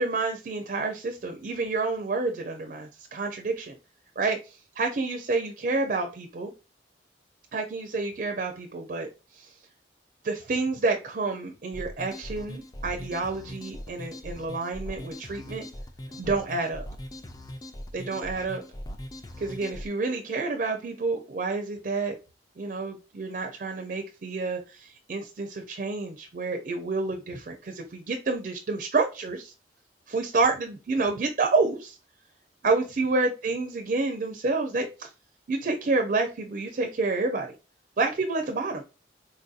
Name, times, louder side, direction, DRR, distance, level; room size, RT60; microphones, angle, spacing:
voice 1, 0.0-3.8 4.2-6.5 7.5-9.1 9.4-9.5 10.2-15.7 16.2-16.9 17.9-18.6 19.4-22.2 22.6-29.5 30.1-32.0 32.6-35.1 35.5-37.5 38.0-38.8, right 3 dB, 50° right, 4 dB, 0.4 m, -29 dB
sound 1, 11.7-19.9, equal, 20° left, 0.3 m, -40 dB
4.0 x 2.6 x 2.4 m, 0.30 s
head